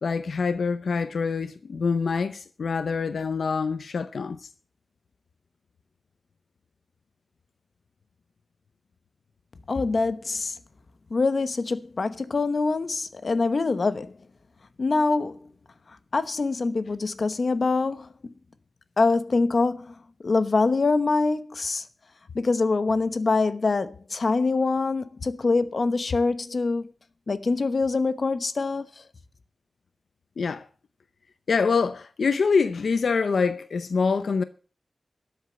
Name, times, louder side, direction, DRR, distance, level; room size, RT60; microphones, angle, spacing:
voice 1, 0.0-4.5 30.4-30.7 31.5-34.4, left 5 dB, 85° left, 0.7 m, -25 dB
voice 2, 9.7-10.5 11.1-14.1 14.8-15.4 16.1-18.3 19.0-19.9 20.2-21.8 22.3-26.9 27.3-29.0, left 3 dB, 55° left, 1.0 m, -24 dB
13.0 x 7.9 x 7.9 m
wide cardioid pair, 105°, 0 cm